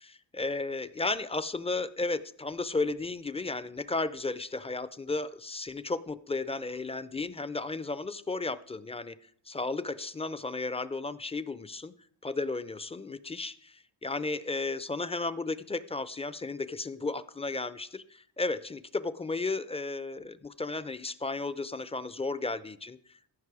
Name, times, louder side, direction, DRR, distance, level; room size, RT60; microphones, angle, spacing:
voice 1, 0.3-9.2 9.5-11.9 12.2-23.0, left 3 dB, 15° left, 16 dB, 0.4 m, -34 dB
14.5 x 5.3 x 4.8 m, 0.62 s
cardioid pair, 80°, 42 cm